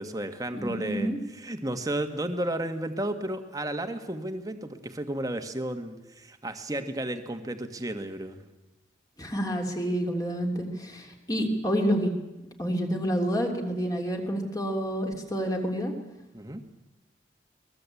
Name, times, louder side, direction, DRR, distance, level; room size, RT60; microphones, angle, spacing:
voice 1, 0.0-8.4 16.3-16.6, right 1 dB, 20° right, 7 dB, 1.7 m, -33 dB
voice 2, 0.6-1.2 9.2-12.1 12.6-15.9, equal, 20° left, 2 dB, 3.2 m, -28 dB
23.0 x 20.0 x 8.5 m, 1.0 s
head